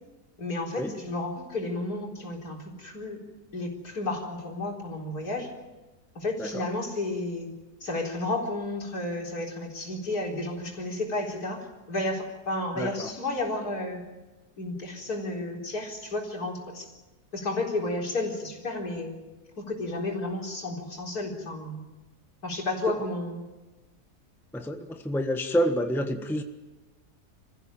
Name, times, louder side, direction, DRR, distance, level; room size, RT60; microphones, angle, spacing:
voice 1, 0.4-3.2 3.5-5.5 6.1-7.5 7.8-14.0 14.6-16.9 17.3-19.2 19.6-21.8 22.4-23.4, left 2 dB, 70° left, 0 dB, 4.6 m, -32 dB
voice 2, 12.8-13.1 24.5-26.4, equal, ahead, 6 dB, 1.2 m, -28 dB
26.0 x 15.0 x 9.0 m, 1.1 s
omnidirectional pair, 1.7 m